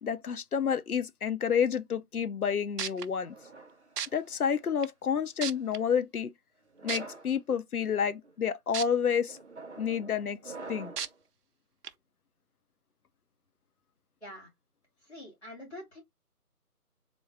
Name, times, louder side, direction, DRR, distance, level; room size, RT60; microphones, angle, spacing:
voice 1, 0.0-3.3 4.1-6.3 6.8-9.4 9.8-10.4 10.7-10.9, left 7 dB, 70° left, 0.6 m, -29 dB
sound 1, 2.4-2.5 2.8-3.1 4.0-4.1 4.8-4.9 5.4-5.8 6.9-7.0 8.7-8.9 9.4-9.5 11.0-11.1 11.8-11.9, right 8 dB, 85° right, 0.5 m, -33 dB
sound 2, 3.2-4.7 5.4-5.8 6.7-7.3 8.0-8.3 9.3-11.2, right 3 dB, 45° right, 0.7 m, -47 dB
voice 2, 14.2-14.5 15.0-16.0, left 1 dB, 45° left, 2.5 m, -45 dB
3.8 x 2.2 x 3.3 m
figure-of-eight pair, 165°, 47 cm